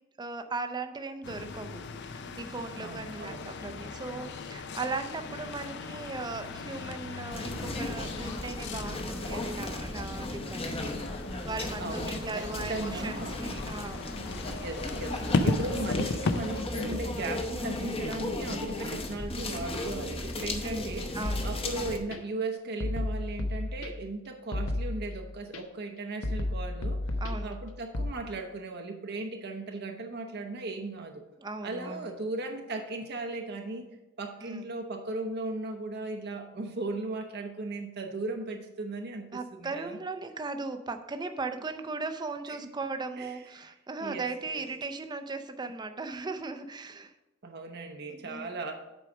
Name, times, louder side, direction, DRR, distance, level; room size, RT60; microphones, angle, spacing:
voice 1, 0.2-10.7 10.9-11.1 11.4-14.2 20.6-21.5 27.2-27.6 31.4-32.1 34.4-34.7 39.3-47.1 48.1-48.6, right 3 dB, 20° right, 8 dB, 0.5 m, -38 dB
sound 1, 1.2-16.6, left 3 dB, 55° left, 0.5 m, -36 dB
voice 2, 2.8-3.5 11.8-13.4 14.5-27.0 27.4-31.2 31.6-33.9 34.2-40.0 42.5-42.7 43.2-43.7 44.0-44.6 47.4-48.7, right 2 dB, 50° right, 3 dB, 0.8 m, -37 dB
sound 2, 7.3-22.0, left 1 dB, 25° left, 0.8 m, -35 dB
sound 3, 21.3-22.2 22.8-24.2 24.5-25.6 26.2-28.1, left 1 dB, 75° left, 0.9 m, -33 dB
7.7 x 4.8 x 6.0 m, 1.0 s
head